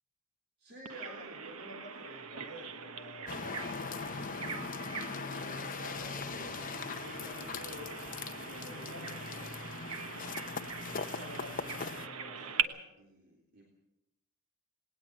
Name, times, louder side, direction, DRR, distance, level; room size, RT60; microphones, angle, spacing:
voice 1, 0.6-4.9 5.4-10.4 10.9-13.7, equal, 45° right, 0 dB, 3.5 m, -50 dB
Bird vocalization bird call bird song, 0.9-12.6, right 6 dB, 80° right, 1.3 m, -42 dB
sound 1, 3.3-12.1, left 5 dB, 40° left, 0.9 m, -40 dB
19.0 x 19.0 x 7.5 m, 0.87 s
head